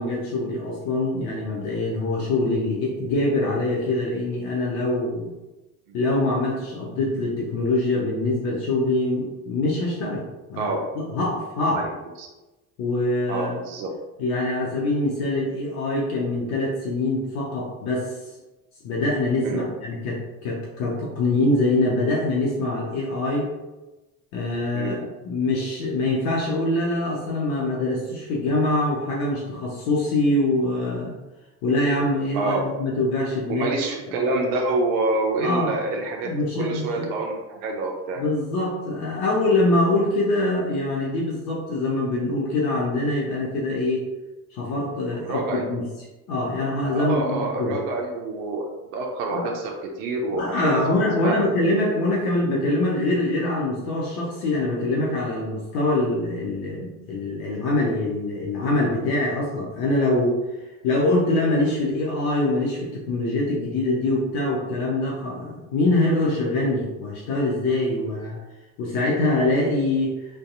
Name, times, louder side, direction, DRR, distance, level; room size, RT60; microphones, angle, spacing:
voice 1, 0.0-5.3 5.9-10.2 10.5-11.9 12.8-13.6 14.2-18.1 18.8-23.5 24.3-31.2 31.6-33.7 35.4-35.8 36.2-37.1 38.2-44.1 44.5-45.9 46.3-47.8 49.3-49.5 50.3-60.4 60.8-68.4 68.8-70.2, left 2 dB, 75° left, -3 dB, 0.7 m, -24 dB
voice 2, 13.3-13.9 19.4-19.7 24.7-25.0 32.3-32.6 33.5-38.2 45.2-45.6 46.9-51.0 51.2-51.4, right 2 dB, 80° right, 1 dB, 0.6 m, -27 dB
2.6 x 2.2 x 2.4 m, 1.1 s
hypercardioid pair, 65°, 44 cm